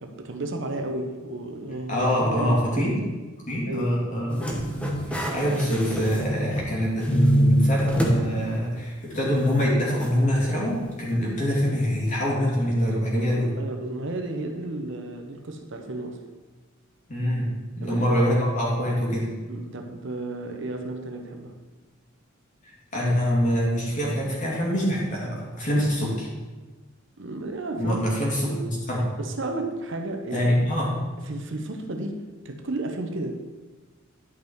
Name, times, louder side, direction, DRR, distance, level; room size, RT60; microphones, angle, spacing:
voice 1, 0.0-3.0 3.7-4.1 13.1-16.2 17.8-18.2 19.5-21.6 27.2-28.0 28.4-28.7 29.2-30.5 31.3-33.5, right 2 dB, 60° right, 5 dB, 0.9 m, -33 dB
voice 2, 1.9-3.0 3.4-4.3 5.1-13.5 17.1-19.3 22.6-26.3 27.8-29.0 30.3-31.0, equal, 40° left, -5 dB, 2.8 m, -24 dB
sound 1, 4.3-6.7 7.0-8.2 8.6-8.7 10.0-10.1, equal, 5° left, 1.1 m, -25 dB
11.0 x 5.4 x 4.6 m, 1.3 s
head